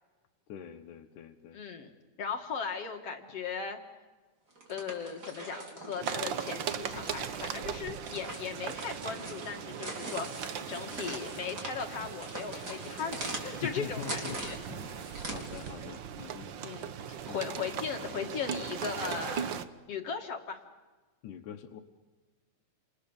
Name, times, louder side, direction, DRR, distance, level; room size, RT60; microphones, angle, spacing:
voice 1, 0.5-1.6 13.6-16.5 17.3-17.4 21.2-21.8, left 9 dB, 80° left, 1 dB, 2.6 m, -44 dB
voice 2, 1.5-1.9 2.2-3.8 4.7-14.6 16.6-19.5 19.9-20.6, left 6 dB, 55° left, 4 dB, 2.5 m, -38 dB
sound 1, 4.5-15.8, right 1 dB, 30° right, 4.6 m, -43 dB
sound 2, 6.0-19.7, right 8 dB, 70° right, 1.1 m, -39 dB
29.5 x 27.5 x 7.2 m, 1.3 s
omnidirectional pair, 3.6 m